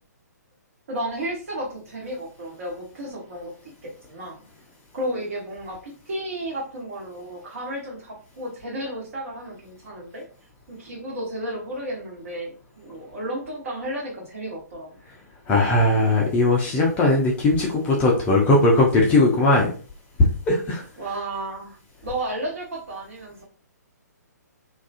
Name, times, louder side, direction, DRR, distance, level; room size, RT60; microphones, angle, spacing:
voice 1, 0.9-4.4 4.9-10.2 10.7-15.0 21.0-21.8 22.0-23.4, right 1 dB, 50° right, -2 dB, 1.1 m, -33 dB
voice 2, 15.5-19.7 20.2-20.8, left 2 dB, 15° left, -2 dB, 0.4 m, -19 dB
2.3 x 2.3 x 2.4 m, 0.41 s
figure-of-eight pair, 125°, 9 cm